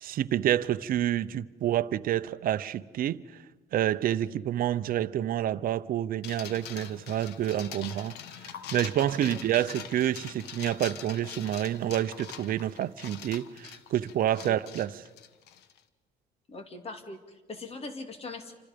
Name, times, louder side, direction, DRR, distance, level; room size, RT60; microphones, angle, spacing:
voice 1, 0.0-3.2 3.7-8.1 8.7-15.0, right 11 dB, 60° right, 0.8 m, -28 dB
sound 1, 6.2-15.8, left 9 dB, 80° left, 1.4 m, -43 dB
voice 2, 16.5-18.5, left 3 dB, 35° left, 2.7 m, -41 dB
29.0 x 26.0 x 5.2 m
cardioid pair, 110°, 17 cm